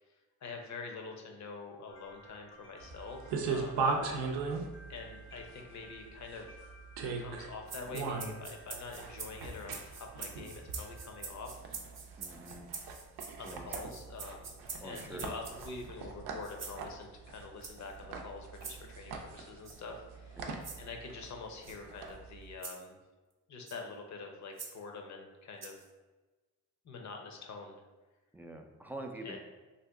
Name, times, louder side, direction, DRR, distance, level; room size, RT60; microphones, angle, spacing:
voice 1, 0.1-3.9 4.9-6.6 7.2-11.6 13.4-20.5 20.8-23.0 23.5-25.8 26.8-27.8 29.2-29.4, left 4 dB, 45° left, 3 dB, 0.7 m, -46 dB
sound 1, 1.9-11.3, equal, 85° left, 0.9 m, -59 dB
sound 2, 2.8-22.5, right 4 dB, 80° right, 0.5 m, -39 dB
voice 2, 3.8-4.1 12.2-12.7 13.4-13.8 14.8-15.4 20.4-20.6 28.3-29.4, right 1 dB, 5° right, 4 dB, 0.3 m, -46 dB
sound 3, 7.7-15.9 16.4-16.8 17.6-17.9 18.6-18.8 19.6-19.8 20.6-20.8 21.6-21.8 22.6-22.8 23.7-23.8 24.6-24.7 25.6-25.9, right 5 dB, 45° right, 0.8 m, -45 dB
2.7 x 2.4 x 3.4 m, 1.2 s
supercardioid pair, 60°, 39 cm